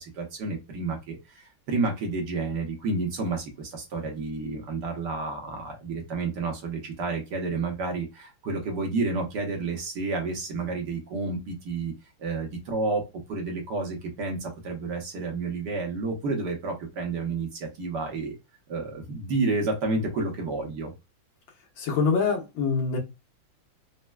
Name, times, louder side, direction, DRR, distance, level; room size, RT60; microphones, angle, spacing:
voice 1, 0.0-11.9 12.2-18.4 18.7-20.9, right 3 dB, 65° right, 1.4 m, -30 dB
voice 2, 21.8-23.0, left 5 dB, 70° left, 1.7 m, -25 dB
4.2 x 2.1 x 2.2 m
omnidirectional pair, 2.2 m